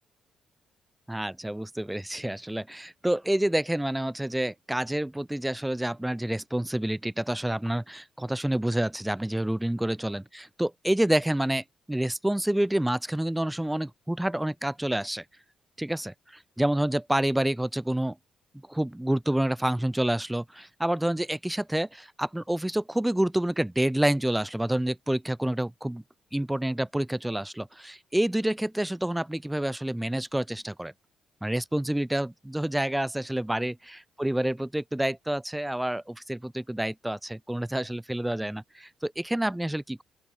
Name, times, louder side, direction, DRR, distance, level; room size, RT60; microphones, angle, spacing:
voice 1, 1.1-15.2 15.8-16.1 16.6-18.2 18.7-26.0 26.3-30.9 31.4-40.0, right 1 dB, 5° right, 2.4 m, -28 dB
open air
cardioid pair, 90°, 0 cm